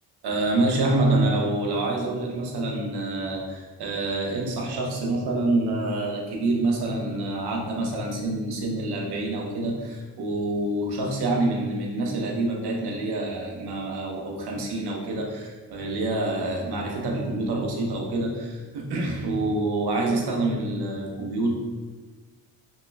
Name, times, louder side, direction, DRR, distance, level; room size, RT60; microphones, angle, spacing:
voice 1, 0.2-21.5, right 2 dB, 70° right, 0 dB, 0.8 m, -27 dB
3.0 x 2.3 x 3.2 m, 1.3 s
supercardioid pair, 65°, 41 cm